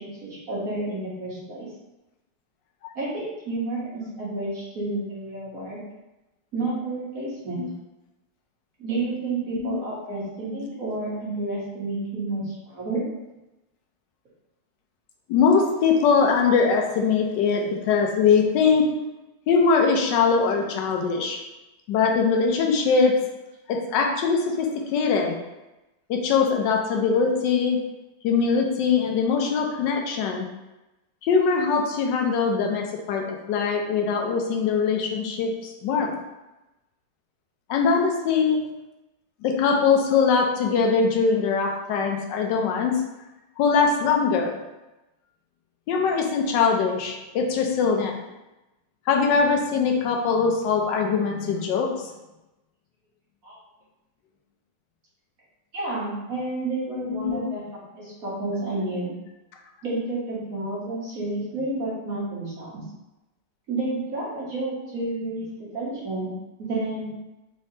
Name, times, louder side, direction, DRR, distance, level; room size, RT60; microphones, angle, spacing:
voice 1, 0.0-1.7 3.0-5.8 6.5-7.6 8.8-13.0 53.4-53.5 55.7-57.6 57.9-59.1 59.8-62.7 63.7-65.5 65.7-66.3 66.6-67.1, right 2 dB, 55° right, -7 dB, 1.6 m, -30 dB
voice 2, 15.3-18.9 19.5-21.4 21.9-23.1 23.7-25.4 26.1-27.8 28.2-30.5 31.2-36.2 37.7-38.6 39.4-43.0 43.6-44.6 45.9-48.2 49.1-52.1 57.0-57.4, left 5 dB, 90° left, 2 dB, 1.3 m, -22 dB
4.2 x 3.2 x 2.8 m, 1.0 s
omnidirectional pair, 1.9 m